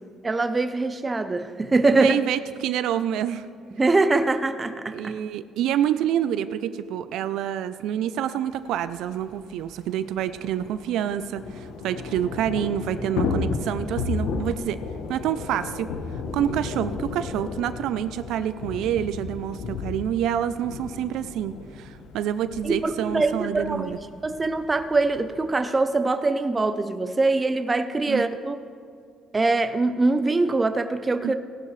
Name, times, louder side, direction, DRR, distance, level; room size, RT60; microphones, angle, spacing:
voice 1, 0.2-2.2 3.7-5.1 22.6-23.9 24.2-28.6 29.3-31.3, right 3 dB, 20° right, 9 dB, 0.6 m, -23 dB
voice 2, 1.9-3.5 4.9-14.8 15.1-15.9 16.3-24.0 28.1-28.2 31.2-31.3, right 10 dB, 80° right, 13 dB, 0.4 m, -27 dB
Thunder / Rain, 8.9-9.0 9.2-9.3 9.6-25.5, left 5 dB, 85° left, 1.0 m, -34 dB
16.5 x 11.5 x 3.2 m, 2.4 s
cardioid pair, 145°, 0 cm